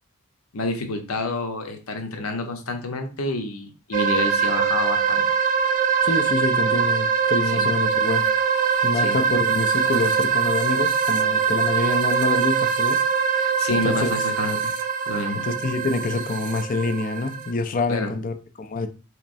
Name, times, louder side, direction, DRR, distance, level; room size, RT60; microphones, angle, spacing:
voice 1, 0.5-5.2 7.5-7.7 8.9-9.2 13.4-14.7 15.1-15.5 17.9-18.1, left 2 dB, 75° left, 0.8 m, -28 dB
sound 1, 3.9-17.5, right 6 dB, 40° right, 0.4 m, -22 dB
voice 2, 6.0-8.3 8.8-13.0 13.7-14.1 15.4-18.9, left 3 dB, 40° left, 0.4 m, -26 dB
4.3 x 3.0 x 2.5 m
head